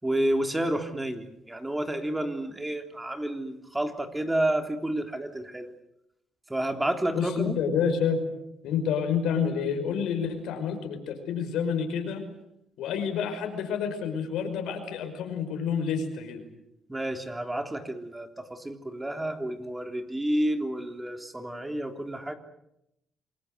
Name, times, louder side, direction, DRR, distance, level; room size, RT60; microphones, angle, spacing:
voice 1, 0.0-5.7 6.5-7.6 16.9-22.3, right 1 dB, 15° right, 5 dB, 3.4 m, -30 dB
voice 2, 7.1-8.2 8.6-12.2 12.8-16.4, left 7 dB, 85° left, 6 dB, 5.4 m, -28 dB
27.5 x 21.5 x 8.0 m, 0.81 s
cardioid pair, 90°, 0 cm